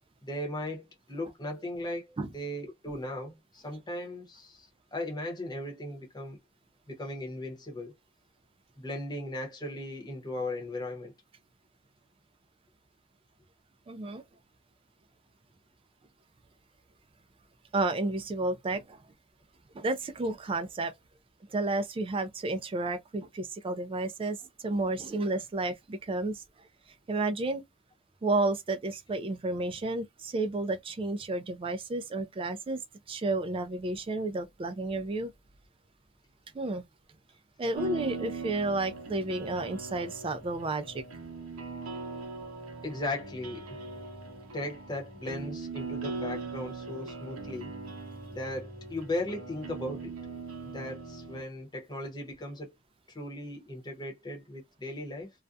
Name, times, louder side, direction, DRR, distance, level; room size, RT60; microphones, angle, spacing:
voice 1, 0.2-6.4 6.9-7.9 8.8-11.1 42.8-43.8 44.5-47.7 48.3-50.1 50.7-52.7 53.1-55.3, left 1 dB, 20° left, 0.8 m, -37 dB
voice 2, 13.9-14.2 17.7-19.0 19.7-20.9 21.5-26.4 27.1-27.6 28.2-32.8 33.1-35.3 36.5-36.8 37.6-41.0, right 2 dB, 25° right, 0.3 m, -31 dB
sound 1, 37.8-51.4, right 4 dB, 80° right, 0.7 m, -40 dB
2.4 x 2.1 x 2.6 m
head